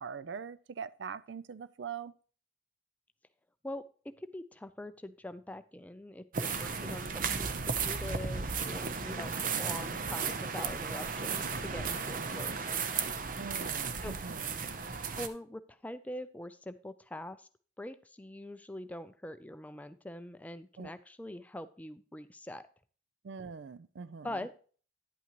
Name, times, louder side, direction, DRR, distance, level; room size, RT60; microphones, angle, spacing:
voice 1, 0.0-2.1 13.4-14.5 20.8-20.9 23.2-24.4, right 6 dB, 75° right, 0.4 m, -42 dB
voice 2, 3.6-12.8 14.0-14.1 15.2-17.5 17.8-22.7 24.2-24.5, left 1 dB, 10° left, 0.4 m, -44 dB
sound 1, 6.3-15.3, right 5 dB, 45° right, 0.7 m, -35 dB
10.5 x 8.4 x 3.0 m
head